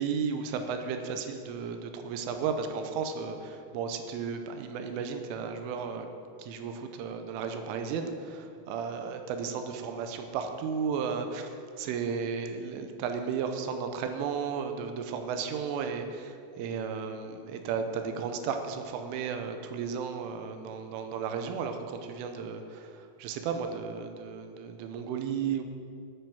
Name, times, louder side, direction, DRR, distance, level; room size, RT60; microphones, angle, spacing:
voice 1, 0.0-6.1 6.4-11.5 11.8-25.6, right 6 dB, 80° right, 6 dB, 3.3 m, -34 dB
10.5 x 8.9 x 7.6 m, 2.3 s
omnidirectional pair, 5.9 m